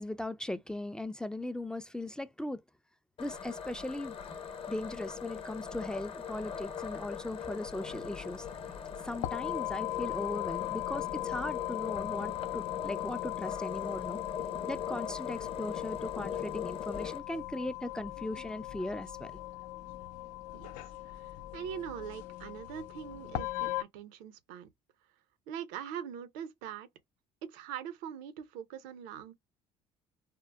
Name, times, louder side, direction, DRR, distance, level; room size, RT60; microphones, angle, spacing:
voice 1, 0.0-2.6 3.2-4.1 4.7-8.5 9.0-14.2 14.7-19.3, left 1 dB, 5° left, 0.3 m, -38 dB
sound 1, 3.2-17.2, left 7 dB, 45° left, 0.8 m, -40 dB
sound 2, 7.6-23.8, left 18 dB, 75° left, 0.4 m, -39 dB
voice 2, 20.5-24.7 25.5-26.9 27.4-29.3, right 9 dB, 85° right, 0.6 m, -42 dB
3.6 x 2.0 x 2.2 m
supercardioid pair, 85°, 13 cm